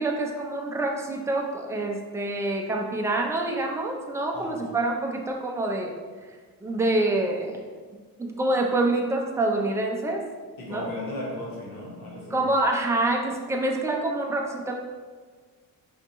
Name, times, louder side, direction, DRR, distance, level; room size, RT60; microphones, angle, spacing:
voice 1, 0.0-5.9 6.6-7.7 8.2-10.2 10.7-10.9 12.3-14.8, right 2 dB, 10° right, 1 dB, 0.3 m, -26 dB
voice 2, 4.3-4.8 10.6-12.4, left 1 dB, 65° left, -4 dB, 1.3 m, -36 dB
4.9 x 3.5 x 2.8 m, 1.5 s
cardioid pair, 160°, 37 cm